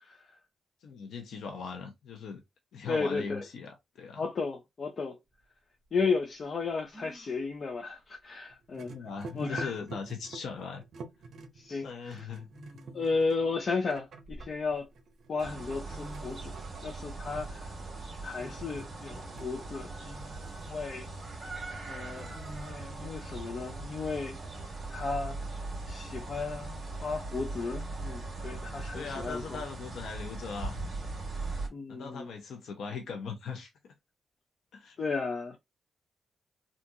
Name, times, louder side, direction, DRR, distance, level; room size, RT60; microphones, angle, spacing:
voice 1, 0.8-2.4 2.7-4.2 8.9-10.8 11.8-12.5 28.9-30.8 31.9-33.9 34.7-35.0, left 5 dB, 80° left, 0.7 m, -40 dB
voice 2, 2.9-3.4 4.2-5.2 5.9-8.9 9.3-9.7 11.6-12.3 12.9-14.9 15.3-16.5 16.8-17.6 18.2-20.3 20.7-21.1 21.9-24.4 24.9-25.4 25.9-29.6 31.7-32.3 35.0-35.6, left 4 dB, 45° left, 0.6 m, -34 dB
sound 1, 5.3-5.4 6.9-7.4 8.9-9.0 9.4-9.9 11.2-11.4 12.5-13.3 13.9-14.9 15.6-15.7 15.9-16.8 18.4-19.0 19.5-19.6 20.3-20.8 22.1-22.7, equal, 15° right, 1.7 m, -50 dB
sound 2, 8.5-20.5 20.7-22.2, right 4 dB, 65° right, 0.7 m, -49 dB
sound 3, 15.4-31.7, right 2 dB, 35° right, 2.0 m, -40 dB
3.7 x 2.5 x 2.7 m
cardioid pair, 115°, 0 cm